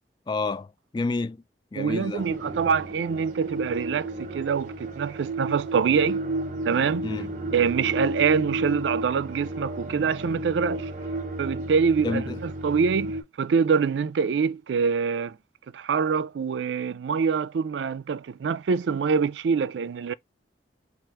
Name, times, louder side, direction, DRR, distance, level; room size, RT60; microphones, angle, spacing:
voice 1, 0.3-1.4 1.7-2.3 7.0-7.3 12.0-12.4, left 3 dB, 25° left, 0.3 m, -29 dB
voice 2, 1.8-6.2 6.7-7.1 7.5-10.9 11.4-15.4 15.7-20.1, right 6 dB, 90° right, 0.4 m, -25 dB
sound 1, 2.2-13.2, right 2 dB, 45° right, 0.9 m, -33 dB
4.8 x 2.4 x 4.4 m
head